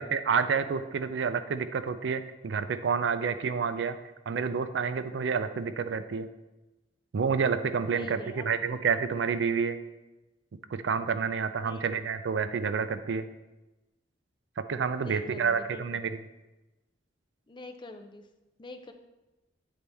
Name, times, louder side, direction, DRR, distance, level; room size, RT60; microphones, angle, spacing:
voice 1, 0.0-4.0 4.3-6.3 7.1-9.8 10.7-13.2 14.6-16.2, right 6 dB, 80° right, 11 dB, 0.4 m, -29 dB
voice 2, 7.9-8.6 11.5-11.9 15.0-16.1 17.5-18.3 18.6-18.9, left 2 dB, 25° left, 6 dB, 0.5 m, -45 dB
9.4 x 4.1 x 3.4 m, 1.1 s
head